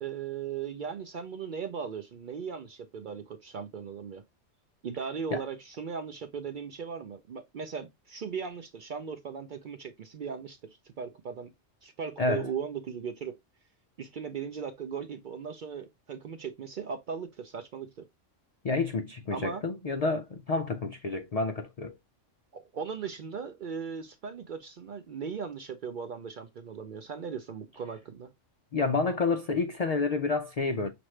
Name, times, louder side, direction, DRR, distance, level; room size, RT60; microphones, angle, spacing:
voice 1, 0.0-4.2 4.8-11.5 11.8-13.3 14.0-18.1 19.3-19.6 22.5-28.3, right 6 dB, 60° right, 0.5 m, -38 dB
voice 2, 18.6-21.9 28.7-30.9, left 3 dB, 80° left, 0.3 m, -29 dB
5.9 x 2.6 x 3.1 m
omnidirectional pair, 1.3 m